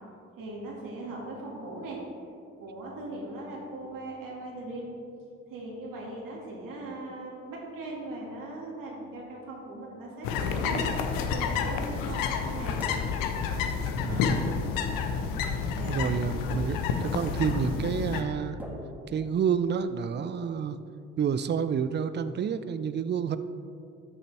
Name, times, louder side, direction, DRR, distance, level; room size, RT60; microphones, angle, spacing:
voice 1, 0.4-2.0 2.6-4.9 5.5-10.8 11.3-12.8 15.7-16.0, right 2 dB, 60° right, -3 dB, 2.0 m, -39 dB
sound 1, 10.2-18.2, left 6 dB, 65° left, 0.8 m, -29 dB
sound 2, 10.8-11.3 12.8-13.4 14.7-15.3 16.5-17.1 18.6-19.6, equal, 5° right, 1.5 m, -43 dB
voice 2, 14.0-14.4 15.8-18.6 19.1-20.8 21.2-23.4, right 7 dB, 30° right, 12 dB, 0.5 m, -29 dB
13.0 x 6.6 x 3.4 m, 2.5 s
figure-of-eight pair, 40°, 36 cm